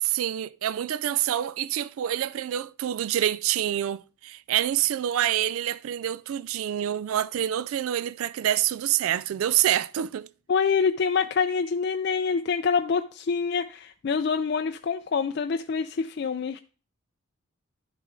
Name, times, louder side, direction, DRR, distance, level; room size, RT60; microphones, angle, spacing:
voice 1, 0.0-10.3, right 11 dB, 85° right, 0.3 m, -27 dB
voice 2, 10.5-16.6, left 5 dB, 50° left, 0.3 m, -26 dB
11.5 x 6.2 x 3.7 m
head